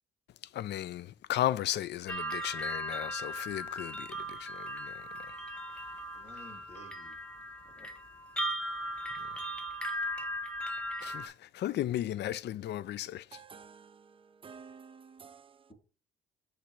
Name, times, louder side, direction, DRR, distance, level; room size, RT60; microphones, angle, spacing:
voice 1, 0.6-1.0 1.3-4.1 11.0-11.1 11.6-13.2, left 13 dB, 60° left, 0.4 m, -34 dB
sound 1, 2.1-11.3, equal, 5° left, 0.9 m, -38 dB
voice 2, 6.1-7.2 7.6-7.9, left 2 dB, 30° left, 2.4 m, -53 dB
voice 3, 13.3-15.7, right 6 dB, 25° right, 0.5 m, -52 dB
6.6 x 3.3 x 4.7 m
cardioid pair, 90°, 20 cm